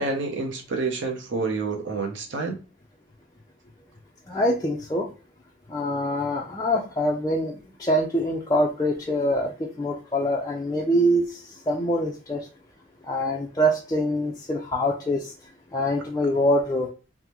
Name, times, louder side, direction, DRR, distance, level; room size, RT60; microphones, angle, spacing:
voice 1, 0.0-2.6, right 3 dB, 65° right, 2 dB, 0.7 m, -28 dB
voice 2, 4.3-5.1 5.7-12.5 13.0-15.3 15.7-16.9, equal, 20° left, -2 dB, 0.3 m, -24 dB
3.5 x 2.0 x 2.8 m, 0.34 s
head